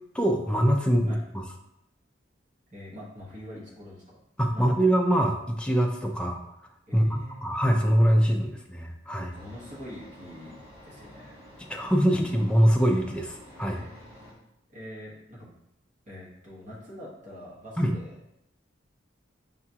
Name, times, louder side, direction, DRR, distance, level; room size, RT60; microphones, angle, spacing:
voice 1, 0.1-1.4 4.4-6.4 6.9-9.3 11.7-13.8 17.8-17.9, equal, 5° left, 2 dB, 0.4 m, -23 dB
voice 2, 2.7-4.2 4.5-4.8 6.9-7.5 9.3-10.6 10.8-11.4 13.7-14.4 14.7-15.5 16.1-18.2, equal, 40° right, -6 dB, 1.2 m, -44 dB
sound 1, 9.3-14.3, equal, 25° right, 1.3 m, -50 dB
5.5 x 2.4 x 2.8 m, 0.81 s
head